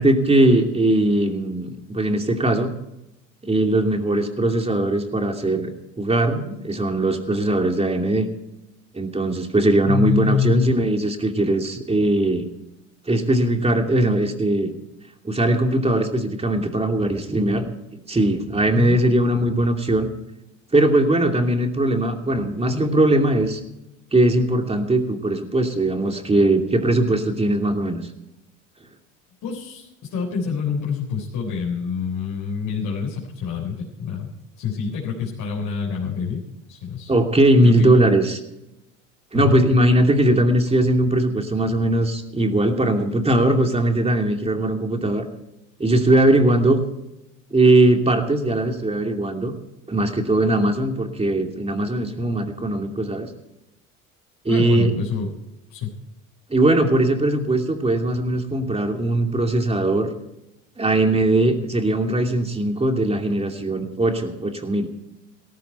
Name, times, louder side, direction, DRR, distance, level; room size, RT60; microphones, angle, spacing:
voice 1, 0.0-2.7 3.4-8.3 8.9-12.5 13.1-14.7 15.2-17.7 18.1-20.1 20.7-23.6 24.1-28.0 37.1-38.4 39.3-45.2 45.8-46.8 47.5-49.5 49.9-53.3 54.4-54.9 56.5-60.1 60.8-64.9, right 1 dB, 15° right, 4 dB, 2.7 m, -20 dB
voice 2, 9.9-10.6 18.7-19.0 29.4-36.4 36.7-37.1 37.6-37.9 39.3-39.6 54.5-55.3 55.7-56.0, left 7 dB, 55° left, -3 dB, 4.1 m, -26 dB
17.5 x 14.5 x 4.5 m, 0.89 s
hypercardioid pair, 70°, 39 cm